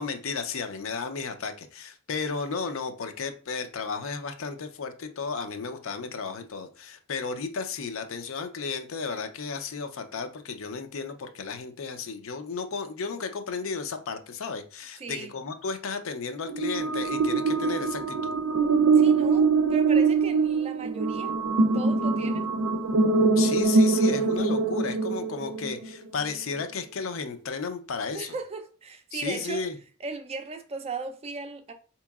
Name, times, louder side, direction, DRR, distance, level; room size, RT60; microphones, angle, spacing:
voice 1, 0.0-18.3 23.4-28.4 29.1-29.8, left 5 dB, 70° left, 0.5 m, -34 dB
voice 2, 15.0-15.3 19.0-22.5 28.1-29.6 30.0-31.7, right 3 dB, 30° right, 0.4 m, -37 dB
sound 1, 16.5-25.8, right 4 dB, 80° right, 0.5 m, -23 dB
4.4 x 2.9 x 2.3 m
head